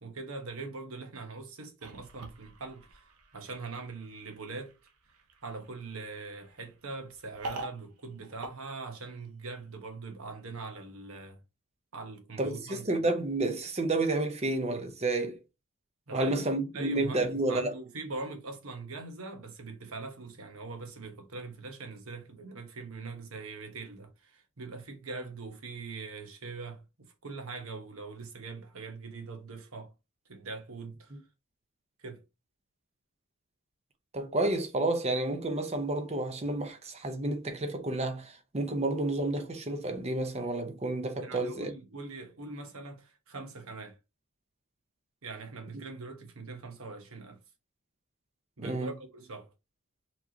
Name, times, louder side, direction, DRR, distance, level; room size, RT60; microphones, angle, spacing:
voice 1, 0.0-4.7 5.4-11.4 11.9-12.8 16.1-26.8 27.2-29.9 30.3-31.1 32.0-32.2 41.2-44.0 45.2-47.4 48.6-49.5, right 3 dB, 65° right, 1.1 m, -42 dB
sound 1, 1.8-9.5, right 2 dB, 90° right, 0.9 m, -47 dB
voice 2, 12.4-15.4 16.1-17.7 31.1-31.2 34.1-41.7 45.7-45.9 48.6-48.9, right 2 dB, 30° right, 0.7 m, -30 dB
4.4 x 3.0 x 2.8 m
head